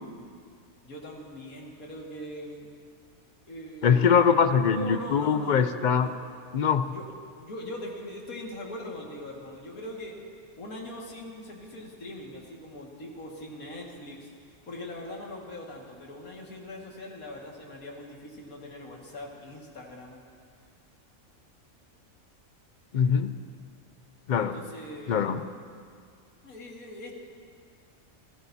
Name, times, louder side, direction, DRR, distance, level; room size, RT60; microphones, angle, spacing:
voice 1, 0.8-2.7 3.5-4.3 4.6-6.1 6.9-10.2 10.6-20.2 24.3-25.3 26.4-27.1, left 1 dB, 80° left, -2 dB, 2.5 m, -41 dB
voice 2, 3.8-6.1 6.5-6.9 22.9-23.3 24.3-24.5 25.1-25.4, left 6 dB, 60° left, 10 dB, 0.5 m, -22 dB
28.0 x 17.5 x 2.8 m, 2.2 s
omnidirectional pair, 1.5 m